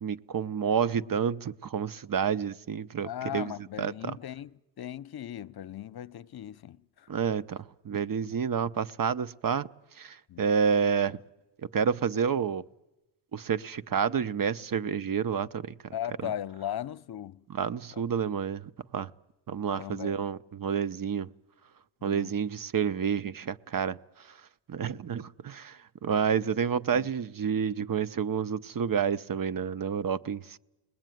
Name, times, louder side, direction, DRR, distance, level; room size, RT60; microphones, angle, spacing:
voice 1, 0.0-3.5 3.8-4.2 7.1-9.7 10.0-11.2 11.7-12.6 13.3-15.7 16.2-16.3 17.5-19.1 19.5-21.3 22.0-24.0 24.7-30.6, right 7 dB, 45° right, 0.9 m, -29 dB
voice 2, 3.0-7.1 10.3-10.5 15.9-17.4 17.9-18.0 19.7-20.2 22.0-22.3 26.9-27.1, left 11 dB, 55° left, 0.9 m, -38 dB
30.0 x 20.5 x 9.3 m
supercardioid pair, 55°, 46 cm